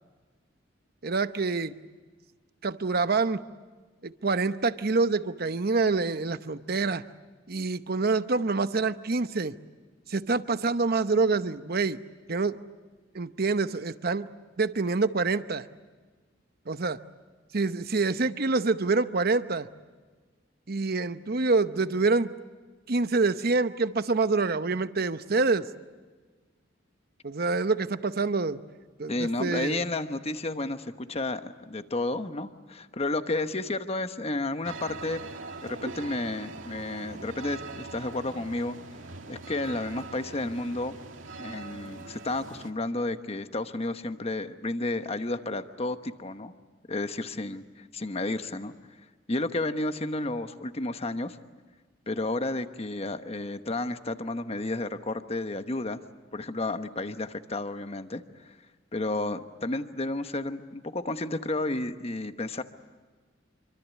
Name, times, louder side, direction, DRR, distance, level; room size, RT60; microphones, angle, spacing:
voice 1, 1.0-1.8 2.6-3.4 4.0-7.0 7.5-9.6 10.1-12.0 12.3-12.6 13.1-14.3 14.6-15.7 16.7-17.0 17.5-19.7 20.7-22.3 22.9-25.7 27.2-28.6 29.0-29.8, right 3 dB, 50° right, 12 dB, 0.9 m, -26 dB
voice 2, 29.1-35.3 35.6-38.8 39.3-41.0 41.4-46.5 46.9-48.7 49.3-51.4 52.1-56.0 56.3-58.5 58.9-62.6, left 2 dB, 30° left, 9 dB, 1.1 m, -32 dB
sound 1, 34.6-42.7, right 3 dB, 85° right, 2.1 m, -42 dB
26.5 x 25.0 x 8.3 m, 1.4 s
head